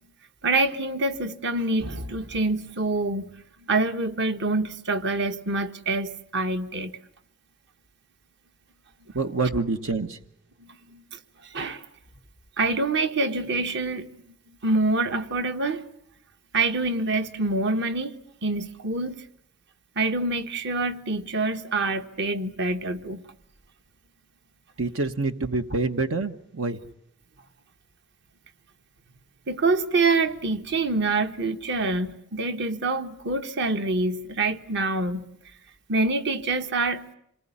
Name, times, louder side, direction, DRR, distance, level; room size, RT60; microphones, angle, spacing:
voice 1, 0.4-3.3 3.7-6.9 10.6-11.2 11.5-11.9 12.6-14.1 14.6-15.8 16.5-19.2 20.0-23.2 29.5-35.2 35.9-37.1, right 3 dB, 60° right, 1.3 m, -26 dB
voice 2, 9.1-10.2 24.8-26.8, right 3 dB, 80° right, 1.1 m, -26 dB
27.5 x 19.5 x 10.0 m
head